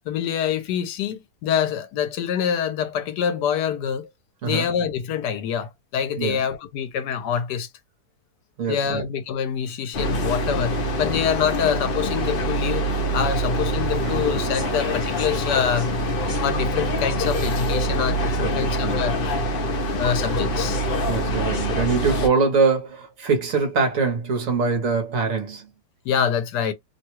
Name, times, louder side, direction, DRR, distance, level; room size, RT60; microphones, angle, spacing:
voice 1, 0.1-4.1 4.4-7.7 8.7-12.9 13.1-15.9 16.4-19.2 20.0-20.8 26.1-26.7, left 8 dB, 80° left, 1.2 m, -25 dB
voice 2, 8.6-9.0 18.4-19.1 21.1-25.7, right 4 dB, 60° right, 1.1 m, -23 dB
sound 1, 9.9-22.3, equal, 55° left, 0.6 m, -25 dB
sound 2, 14.0-16.4, right 9 dB, 80° right, 1.2 m, -37 dB
3.0 x 2.2 x 2.9 m
omnidirectional pair, 1.8 m